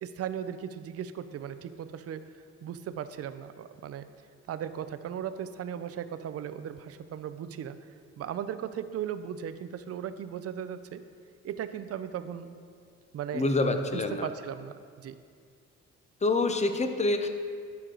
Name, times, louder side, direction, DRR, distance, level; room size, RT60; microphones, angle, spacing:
voice 1, 0.0-2.2 2.6-4.0 4.5-7.8 8.2-11.0 11.4-12.6 13.1-13.4 13.9-15.2, right 9 dB, 50° right, 11 dB, 0.5 m, -37 dB
voice 2, 13.3-14.3 16.2-17.3, left 2 dB, 25° left, 7 dB, 0.6 m, -26 dB
11.0 x 4.7 x 3.8 m, 2.1 s
cardioid pair, 90°, 30 cm